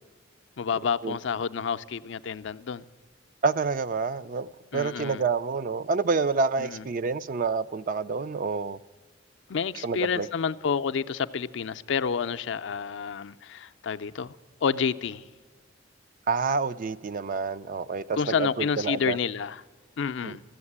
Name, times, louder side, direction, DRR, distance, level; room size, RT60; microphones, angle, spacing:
voice 1, 0.6-2.9 4.7-5.2 6.6-6.8 9.5-14.4 14.6-15.3 18.1-19.6 20.0-20.4, left 6 dB, 65° left, 0.4 m, -29 dB
voice 2, 3.4-8.8 9.8-10.3 16.3-19.2 20.2-20.4, right 4 dB, 45° right, 0.4 m, -28 dB
14.0 x 8.0 x 9.7 m
head